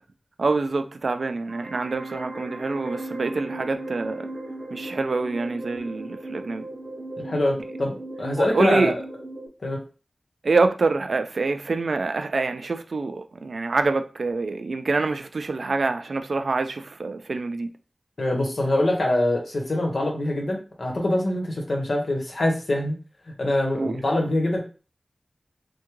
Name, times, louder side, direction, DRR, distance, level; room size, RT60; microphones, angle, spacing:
voice 1, 0.4-4.3 4.7-6.7 8.4-8.9 10.4-17.7 23.7-24.0, right 3 dB, 80° right, 0.4 m, -26 dB
sound 1, 1.5-9.5, right 1 dB, 65° right, 0.9 m, -36 dB
voice 2, 7.2-8.9 9.6-9.8 18.2-22.9 23.4-24.6, left 1 dB, 75° left, 1.0 m, -24 dB
3.5 x 2.2 x 3.0 m
wide cardioid pair, 70°, 0 cm